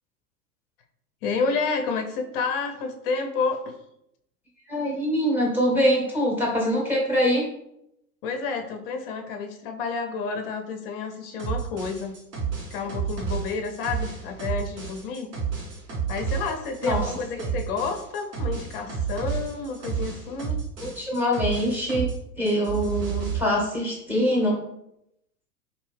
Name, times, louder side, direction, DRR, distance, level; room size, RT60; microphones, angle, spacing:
voice 1, 1.2-3.7 8.2-12.2 12.7-15.3 16.1-20.6, left 4 dB, 40° left, 5 dB, 0.5 m, -30 dB
voice 2, 4.7-7.4 16.8-17.0 20.8-22.1 22.4-24.6, equal, 5° right, -2 dB, 0.8 m, -24 dB
sound 1, 11.4-22.2 22.5-23.4, right 6 dB, 80° right, 1.3 m, -31 dB
2.6 x 2.6 x 3.2 m, 0.79 s
figure-of-eight pair, 100°, 48 cm